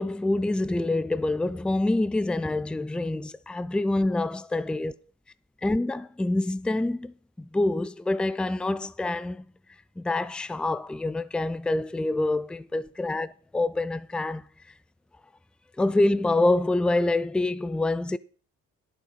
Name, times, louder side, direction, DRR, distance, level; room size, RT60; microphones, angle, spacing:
voice 1, 0.0-4.9 5.6-9.5 10.0-14.4 15.8-18.2, left 2 dB, 5° left, 0.4 m, -26 dB
11.0 x 9.8 x 4.1 m
cardioid pair, 90°, 30 cm